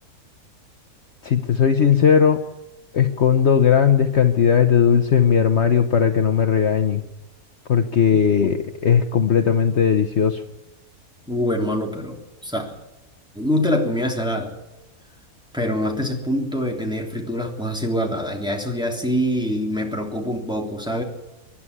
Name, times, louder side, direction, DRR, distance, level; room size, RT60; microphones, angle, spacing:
voice 1, 1.2-2.4 2.9-7.0 7.7-10.4, left 7 dB, 55° left, 7 dB, 1.1 m, -17 dB
voice 2, 8.1-8.5 11.3-12.8 13.3-14.5 15.5-21.0, equal, 5° right, 0 dB, 3.2 m, -25 dB
24.5 x 11.0 x 9.9 m, 1.0 s
omnidirectional pair, 1.6 m